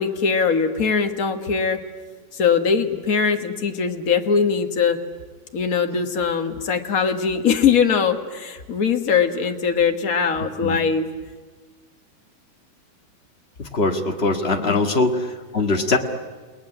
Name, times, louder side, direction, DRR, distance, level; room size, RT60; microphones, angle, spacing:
voice 1, 0.0-1.8 2.3-5.0 5.5-11.1 14.7-14.8, left 6 dB, 65° left, 5 dB, 0.8 m, -21 dB
voice 2, 13.6-16.0, left 3 dB, 35° left, 4 dB, 1.0 m, -22 dB
29.0 x 19.5 x 9.9 m, 1.4 s
omnidirectional pair, 3.7 m